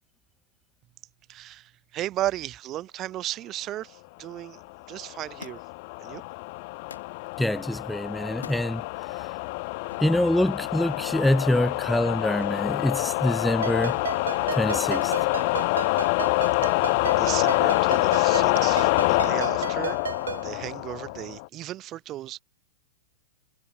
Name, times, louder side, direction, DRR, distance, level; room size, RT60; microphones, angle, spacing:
voice 1, 1.3-4.6 4.9-5.6 6.0-6.2 16.4-20.0 20.4-22.4, right 14 dB, 35° right, 7.1 m, -35 dB
sound 1, 5.0-21.5, left 27 dB, 50° left, 1.0 m, -26 dB
Thump thud, 5.4-5.9 6.9-7.2 8.3-8.7 9.9-10.2 12.4-12.7 13.1-13.6 15.0-15.3 16.4-16.7 17.6-18.1 19.1-19.2, left 6 dB, 85° left, 6.2 m, -46 dB
voice 2, 7.4-8.8 9.2-9.3 10.0-14.0 14.5-15.1, left 1 dB, 5° left, 1.3 m, -25 dB
Ringtone, 13.6-20.5, right 6 dB, 80° right, 1.6 m, -34 dB
hypercardioid pair, 100°, 0 cm